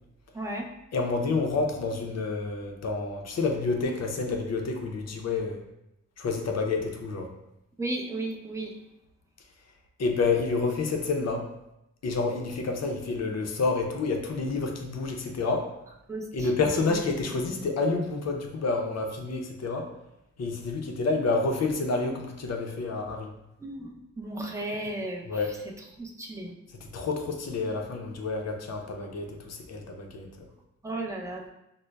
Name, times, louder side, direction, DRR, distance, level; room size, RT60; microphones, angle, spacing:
voice 1, 0.3-0.7 7.8-8.7 16.1-16.9 23.6-25.3 26.0-26.5 30.8-31.4, right 2 dB, 10° right, -1 dB, 0.5 m, -34 dB
voice 2, 0.9-5.6 6.2-7.3 10.0-11.5 12.0-15.7 16.3-19.9 20.4-23.3 25.3-25.6 26.8-30.3, left 3 dB, 60° left, 3 dB, 0.6 m, -29 dB
5.1 x 2.0 x 2.2 m, 0.87 s
wide cardioid pair, 90°, 30 cm